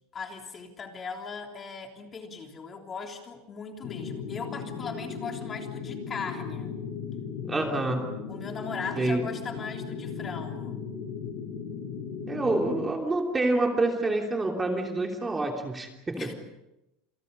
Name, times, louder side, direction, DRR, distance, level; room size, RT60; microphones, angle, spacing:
voice 1, 0.1-6.8 8.3-10.8 16.2-16.3, left 5 dB, 20° left, 3 dB, 3.4 m, -39 dB
sound 1, 3.8-12.9, left 6 dB, 55° left, 7.4 m, -36 dB
voice 2, 7.5-8.0 9.0-9.2 12.3-16.3, right 2 dB, 10° right, 2 dB, 3.2 m, -27 dB
29.0 x 28.0 x 5.5 m, 0.90 s
supercardioid pair, 150°, 0 cm